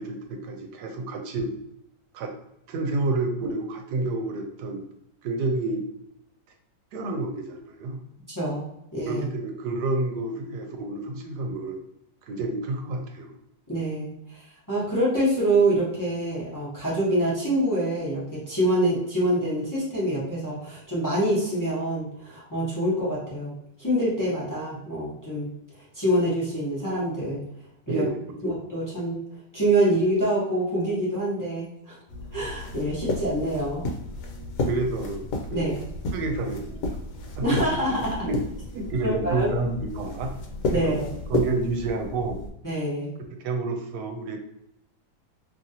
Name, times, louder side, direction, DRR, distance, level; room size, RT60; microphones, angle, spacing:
voice 1, 0.0-1.6 2.1-2.3 2.7-4.8 5.2-5.8 6.9-8.0 9.1-11.8 12.3-13.3 27.9-28.2 34.7-35.8 36.1-36.8 37.4-37.5 38.2-38.4 38.7-40.3 40.7-41.0 41.3-42.4 43.4-44.4, right 3 dB, 75° right, 4 dB, 1.1 m, -29 dB
voice 2, 8.9-9.2 13.7-23.5 23.8-25.5 25.9-27.4 27.9-28.0 28.4-29.2 29.5-32.0 32.3-33.9 35.5-35.8 37.4-38.3 39.0-39.5 40.7-41.1 42.6-43.1, right 1 dB, 20° left, -8 dB, 0.6 m, -25 dB
sound 1, 32.1-42.5, left 2 dB, 75° left, 1.1 m, -33 dB
2.9 x 2.6 x 2.7 m, 0.80 s
omnidirectional pair, 1.8 m